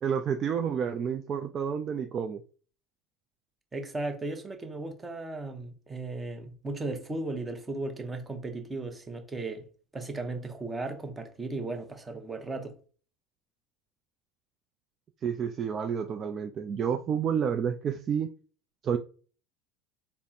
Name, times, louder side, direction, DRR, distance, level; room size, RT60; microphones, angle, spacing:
voice 1, 0.0-2.4 15.2-18.3 18.8-19.0, right 7 dB, 40° right, 0.3 m, -29 dB
voice 2, 3.7-9.7 9.9-12.7, right 2 dB, 20° right, 0.8 m, -36 dB
3.4 x 2.0 x 4.1 m
hypercardioid pair, 85°, 0 cm